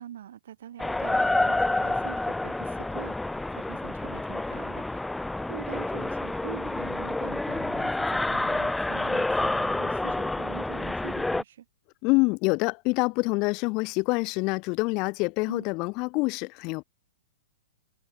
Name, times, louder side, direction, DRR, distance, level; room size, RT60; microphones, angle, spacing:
voice 1, 0.0-5.0 5.5-11.6 15.5-15.6, right 10 dB, 70° right, 1.3 m, -44 dB
sound 1, 0.8-11.4, left 2 dB, 5° left, 0.6 m, -28 dB
voice 2, 12.0-16.8, left 27 dB, 35° left, 0.9 m, -26 dB
hypercardioid pair, 140°, 0 cm